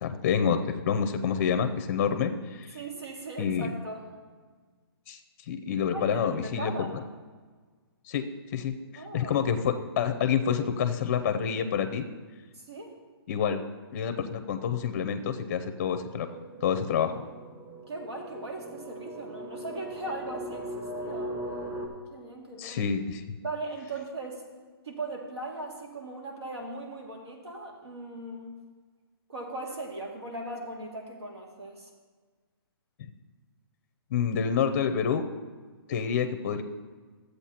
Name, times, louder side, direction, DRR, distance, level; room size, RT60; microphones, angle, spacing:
voice 1, 0.0-2.8 3.4-3.7 5.1-5.2 5.5-6.7 8.1-12.0 13.3-13.6 13.9-16.3 16.6-17.1 22.6-23.2 34.1-35.2 35.9-36.6, left 7 dB, 35° left, 8 dB, 0.5 m, -28 dB
voice 2, 2.7-4.1 5.9-7.0 9.0-9.4 12.5-13.0 17.0-17.2 17.9-21.3 22.1-22.8 23.4-24.4 24.8-28.6 29.3-31.9, right 2 dB, 85° right, 1 dB, 2.2 m, -39 dB
sound 1, 16.3-21.9, right 1 dB, 20° right, 1.0 m, -39 dB
13.5 x 7.9 x 2.8 m, 1.4 s
hypercardioid pair, 160°, 13 cm